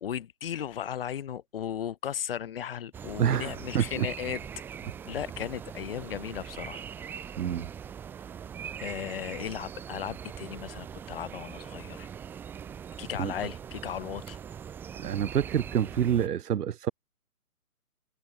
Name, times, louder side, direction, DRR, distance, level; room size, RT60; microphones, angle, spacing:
voice 1, 0.0-4.4 5.1-6.8 8.8-12.1 13.0-14.4, left 9 dB, 40° left, 1.2 m, -36 dB
sound 1, 2.9-16.3, right 8 dB, 5° right, 1.1 m, -42 dB
voice 2, 3.2-4.1 7.4-7.7 13.2-13.3 15.0-16.9, right 9 dB, 85° right, 0.8 m, -27 dB
hypercardioid pair, 160°, 45 cm